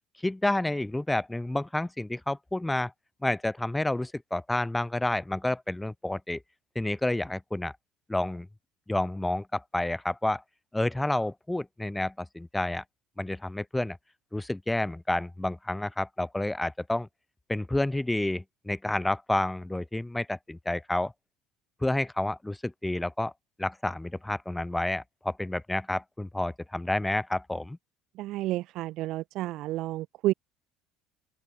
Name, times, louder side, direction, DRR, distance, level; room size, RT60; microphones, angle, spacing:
voice 1, 0.2-2.9 3.2-6.4 6.7-7.7 8.1-8.5 8.9-10.4 10.7-12.8 13.2-14.0 14.3-17.1 17.5-21.1 21.8-23.3 23.6-27.8, left 1 dB, 5° left, 0.8 m, -29 dB
voice 2, 28.1-30.3, right 16 dB, 50° right, 3.6 m, -30 dB
open air
cardioid pair, 170°, 0 cm